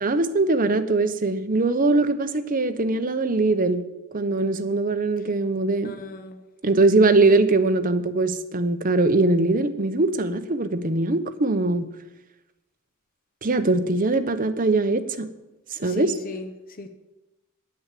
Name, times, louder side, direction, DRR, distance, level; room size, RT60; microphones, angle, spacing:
voice 1, 0.0-3.8 4.1-5.9 6.6-11.9 13.4-15.3 15.7-16.1, right 2 dB, 40° right, 0.8 m, -21 dB
voice 2, 5.8-6.4 15.7-16.9, left 3 dB, 40° left, 0.8 m, -37 dB
9.4 x 8.6 x 7.5 m
head